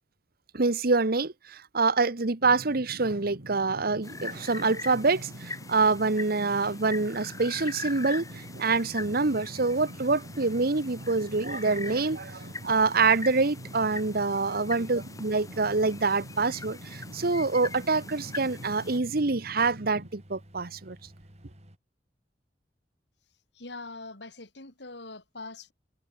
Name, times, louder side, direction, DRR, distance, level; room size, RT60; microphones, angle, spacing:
voice 1, 0.5-21.0, right 3 dB, 55° right, 1.2 m, -26 dB
sound 1, 2.4-20.1, right 1 dB, 75° right, 3.2 m, -45 dB
sound 2, 4.0-19.0, left 3 dB, 20° left, 1.8 m, -42 dB
sound 3, 8.9-21.8, equal, 40° right, 5.6 m, -53 dB
voice 2, 23.5-25.7, left 3 dB, 70° left, 4.0 m, -42 dB
head